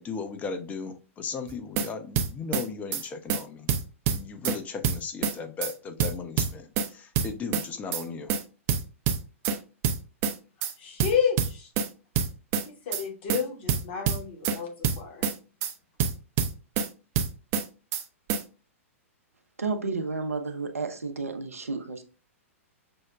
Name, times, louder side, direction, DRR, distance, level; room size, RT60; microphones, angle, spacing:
voice 1, 0.0-3.7 4.1-8.4, left 5 dB, 20° left, 0.5 m, -36 dB
sound 1, 1.5-1.9 2.2-2.6 2.9-3.0 3.3-3.4 3.7-4.6 4.8-5.3 5.6-5.7 6.0-6.9 7.2-7.6 7.9-8.0 8.3-8.4 8.7-9.6 9.8-10.3 10.6-10.7 11.0-11.9 12.2-12.6 12.9-13.0 13.3-13.4 13.7-14.6 14.8-15.3 15.6-15.7 16.0-16.9 17.2-17.6 17.9-18.0 18.3-18.4, right 7 dB, 35° right, 0.5 m, -26 dB
voice 2, 10.8-11.7 12.9-15.2, left 7 dB, 50° left, 1.2 m, -30 dB
voice 3, 19.6-22.0, right 4 dB, 80° right, 0.6 m, -31 dB
6.1 x 2.1 x 2.3 m
figure-of-eight pair, 105°, 8 cm